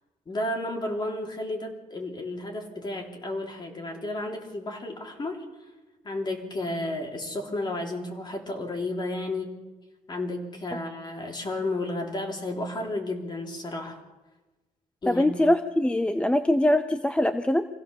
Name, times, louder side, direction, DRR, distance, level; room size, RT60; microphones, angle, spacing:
voice 1, 0.3-5.5 6.0-9.5 10.1-14.0 15.0-15.4, left 2 dB, 30° left, 1 dB, 3.5 m, -32 dB
voice 2, 15.1-17.7, left 1 dB, 5° left, 10 dB, 0.6 m, -23 dB
25.5 x 16.5 x 7.0 m, 1.2 s
wide cardioid pair, 155°, 14 cm